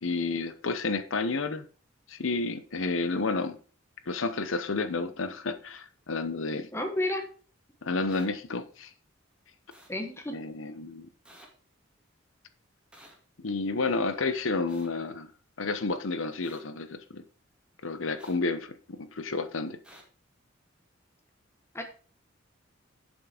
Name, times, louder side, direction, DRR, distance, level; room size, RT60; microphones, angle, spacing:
voice 1, 0.0-1.6 2.1-3.6 4.1-6.7 7.8-8.9 10.3-11.1 13.4-15.3 15.6-17.2 17.8-19.8, left 3 dB, 80° left, 0.9 m, -31 dB
voice 2, 6.7-7.2 9.9-10.3 21.7-21.8, left 1 dB, 15° left, 1.3 m, -31 dB
sound 1, 8.1-8.3 9.7-9.9 11.2-11.5 12.9-13.1 14.7-14.9 16.4-16.6 18.2-18.4 19.8-20.0, right 1 dB, 5° right, 2.3 m, -52 dB
7.6 x 6.0 x 5.0 m
head